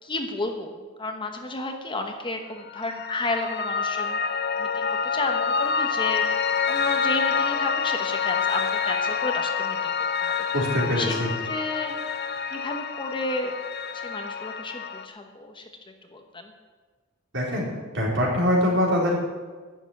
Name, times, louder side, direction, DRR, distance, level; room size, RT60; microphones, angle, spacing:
voice 1, 0.0-0.7 1.0-4.2 4.6-9.9 10.2-10.3 11.0-11.2 11.4-11.9 12.5-13.5 13.9-15.7 16.1-16.5, left 2 dB, 25° left, 4 dB, 1.1 m, -32 dB
Piano, 2.7-15.1, left 6 dB, 50° left, 0.7 m, -27 dB
voice 2, 10.5-11.3 17.3-17.7 17.9-19.2, left 1 dB, 60° right, -3 dB, 3.9 m, -23 dB
11.5 x 7.1 x 9.5 m, 1.4 s
head